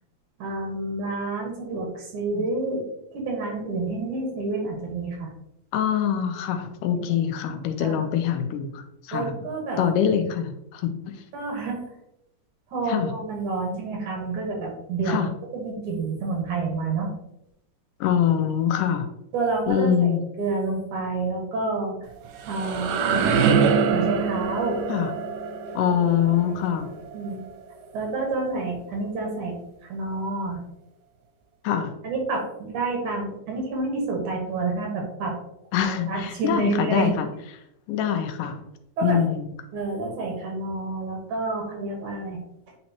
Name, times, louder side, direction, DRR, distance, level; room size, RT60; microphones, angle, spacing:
voice 1, 0.4-2.8 3.1-5.3 7.8-8.0 9.1-9.8 11.3-11.8 12.7-15.2 15.5-17.1 19.3-22.1 22.5-23.5 23.9-24.8 27.1-27.4 27.9-29.6 29.8-30.6 32.0-35.3 35.8-37.1 39.0-39.3 39.7-42.4, right 3 dB, 70° right, 0 dB, 2.8 m, -29 dB
voice 2, 5.7-9.3 9.8-11.2 12.9-13.1 15.1-15.3 18.0-19.1 19.7-20.2 24.9-25.1 25.8-26.9 31.6-31.9 35.7-37.3 37.9-38.6 39.0-39.5, left 9 dB, 90° left, 7 dB, 2.2 m, -24 dB
sound 1, 22.1-27.9, right 6 dB, 85° right, 2.4 m, -25 dB
8.7 x 4.1 x 2.9 m, 0.81 s
omnidirectional pair, 3.7 m